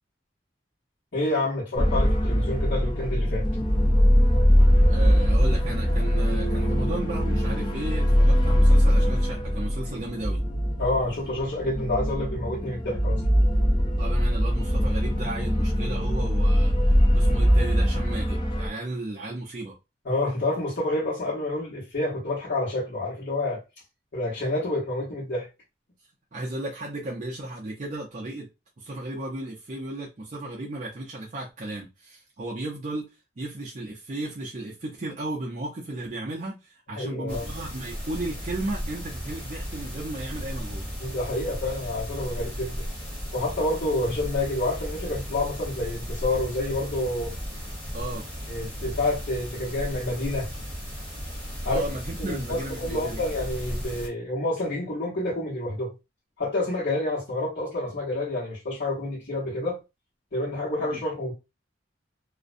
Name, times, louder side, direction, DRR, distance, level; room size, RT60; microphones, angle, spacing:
voice 1, 1.1-3.4 10.8-13.2 20.0-23.6 24.1-25.5 36.9-37.5 41.0-42.8 43.3-47.3 48.5-50.5 51.6-51.8 52.2-55.9 56.4-59.8 60.3-61.3, left 2 dB, 75° left, 1.0 m, -28 dB
sound 1, 1.7-18.7, equal, 25° left, 0.4 m, -22 dB
voice 2, 4.9-10.4 14.0-16.8 17.1-19.7 26.3-28.5 28.8-33.1 33.4-40.9 47.9-48.2 51.7-53.2 60.9-61.0, right 2 dB, 40° right, 0.5 m, -34 dB
sound 2, 5.9-14.3, right 4 dB, 90° left, 0.5 m, -41 dB
sound 3, 37.3-54.1, equal, 10° left, 0.9 m, -35 dB
2.5 x 2.1 x 2.5 m
head